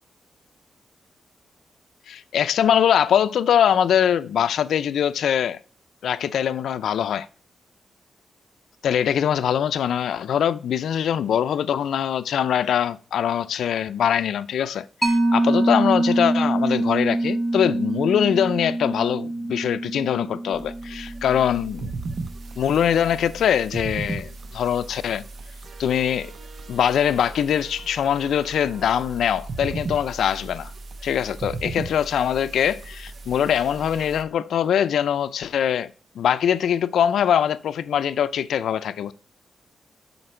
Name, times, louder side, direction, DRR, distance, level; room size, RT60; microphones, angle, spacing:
voice 1, 2.1-5.6 6.0-7.3 8.8-21.9 22.6-25.2 25.8-26.3 26.7-30.7 31.0-35.9 36.2-39.1, left 9 dB, 90° left, 0.5 m, -22 dB
Mallet percussion, 15.0-22.1, right 1 dB, 20° right, 1.6 m, -25 dB
sound 1, 20.5-34.2, right 3 dB, 50° right, 1.0 m, -36 dB
7.9 x 5.8 x 4.4 m
wide cardioid pair, 120°, 0 cm